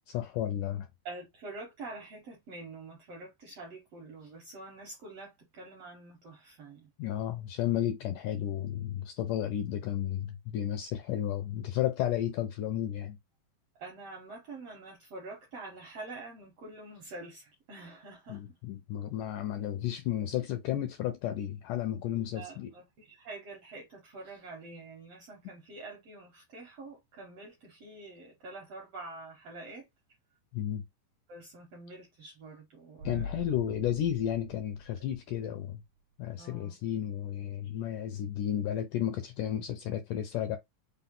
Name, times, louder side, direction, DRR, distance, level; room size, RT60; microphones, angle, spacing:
voice 1, 0.1-0.9 7.0-13.2 18.3-22.7 30.5-30.8 33.0-35.8 36.2-40.6, left 11 dB, 85° left, 1.8 m, -33 dB
voice 2, 1.0-6.9 13.8-18.4 22.1-29.9 31.3-33.5 36.4-36.8, right 3 dB, 70° right, 1.5 m, -46 dB
sound 1, 36.0-36.1, equal, 90° right, 1.7 m, -43 dB
5.6 x 2.0 x 3.6 m
omnidirectional pair, 4.1 m